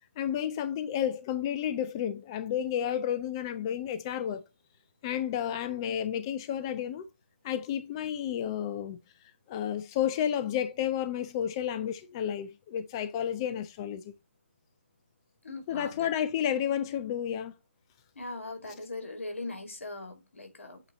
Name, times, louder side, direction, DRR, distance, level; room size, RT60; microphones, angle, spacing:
voice 1, 0.2-4.4 5.0-7.1 7.4-9.0 9.5-14.1 15.7-17.5, left 9 dB, 20° left, 0.3 m, -31 dB
voice 2, 15.4-16.1 18.2-20.8, left 2 dB, 75° left, 2.2 m, -40 dB
8.0 x 2.8 x 4.9 m
figure-of-eight pair, 155°, 7 cm